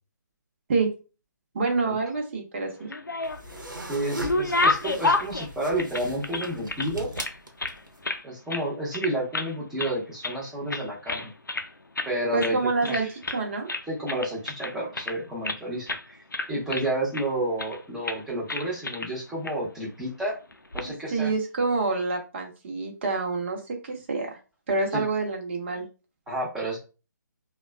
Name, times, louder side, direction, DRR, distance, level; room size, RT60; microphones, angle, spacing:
voice 1, 1.5-2.7 12.3-13.1 13.3-13.7 20.8-24.4 24.7-25.8, right 3 dB, 35° right, 1 dB, 1.0 m, -27 dB
sound 1, 2.8-3.6 4.0-6.9 7.2-8.2 8.5-8.7 8.9-9.5 9.8-10.4 10.7-11.7 12.0-12.1 12.4-12.6 12.8-13.4 13.7-15.6 15.9-16.0 16.3-17.2 17.6-17.8 18.0-18.2 18.5-19.1 19.4-19.5 20.5-20.8, left 3 dB, 85° left, 0.5 m, -29 dB
sound 2, 3.2-8.0, right 1 dB, 80° right, 0.9 m, -39 dB
voice 2, 3.9-7.1 8.2-11.3 12.0-13.1 13.9-16.2 16.5-20.4 20.7-21.3 24.9-25.0 26.3-26.8, right 1 dB, 5° right, -6 dB, 0.9 m, -30 dB
3.9 x 2.3 x 2.3 m, 0.33 s
figure-of-eight pair, 145°, 10 cm